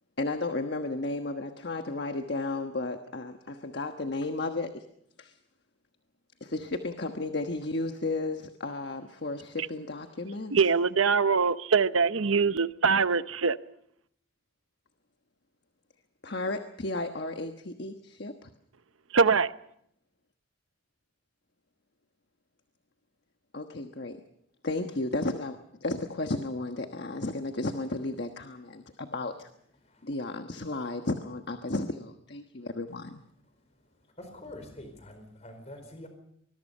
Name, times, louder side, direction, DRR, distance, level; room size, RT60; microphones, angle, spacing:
voice 1, 0.2-4.8 5.2-5.4 6.4-10.5 16.2-18.5 23.5-24.2 24.6-29.5 30.0-33.2, left 2 dB, 55° left, 1.3 m, -33 dB
voice 2, 10.5-13.6 19.1-19.5, right 5 dB, 85° right, 0.9 m, -23 dB
voice 3, 34.2-36.1, left 1 dB, 35° left, 4.6 m, -45 dB
24.5 x 21.5 x 5.5 m
head